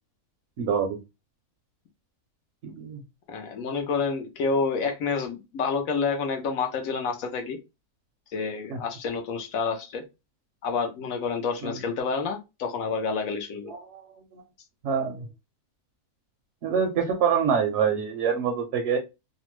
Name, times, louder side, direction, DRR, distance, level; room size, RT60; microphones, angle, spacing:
voice 1, 0.6-1.0 2.6-3.0 8.7-8.8 11.6-11.7 13.7-14.0 14.3-14.4 14.8-15.3 16.6-19.0, right 7 dB, 65° right, 4 dB, 0.8 m, -25 dB
voice 2, 3.3-7.6 8.3-10.0 10.6-13.7, left 5 dB, 70° left, 5 dB, 1.0 m, -28 dB
2.9 x 2.1 x 3.0 m, 0.25 s
omnidirectional pair, 1.6 m